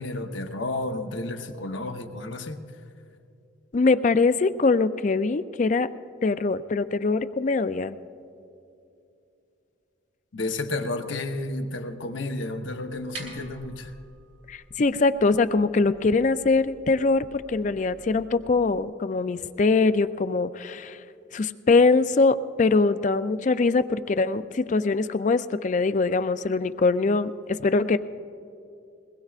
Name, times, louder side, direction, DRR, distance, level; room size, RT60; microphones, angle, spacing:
voice 1, 0.0-2.6 10.3-13.9, left 2 dB, 75° left, 5 dB, 0.9 m, -31 dB
voice 2, 3.7-5.9 6.2-8.0 14.5-21.0 21.3-28.0, left 3 dB, 40° left, 13 dB, 0.4 m, -23 dB
sound 1, 12.9-18.8, right 2 dB, 85° right, 3.9 m, -48 dB
22.5 x 19.5 x 2.5 m, 2.7 s
head